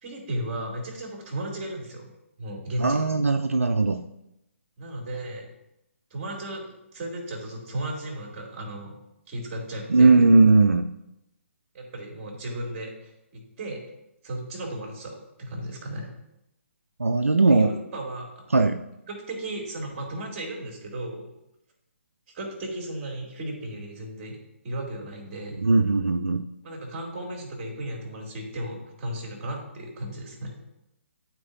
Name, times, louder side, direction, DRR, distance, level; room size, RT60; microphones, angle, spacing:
voice 1, 0.0-2.1 2.4-3.1 4.8-5.5 6.1-6.6 6.9-8.9 9.3-10.1 11.7-13.8 14.2-16.1 17.5-18.4 19.1-21.3 22.3-24.4 24.6-25.6 26.6-30.5, right 1 dB, 30° right, -2 dB, 2.8 m, -35 dB
voice 2, 2.8-4.0 9.9-10.9 17.0-17.7 18.5-18.8 25.6-26.4, right 3 dB, 85° right, 8 dB, 0.4 m, -19 dB
12.0 x 4.5 x 2.7 m, 0.86 s
figure-of-eight pair, 135°, 7 cm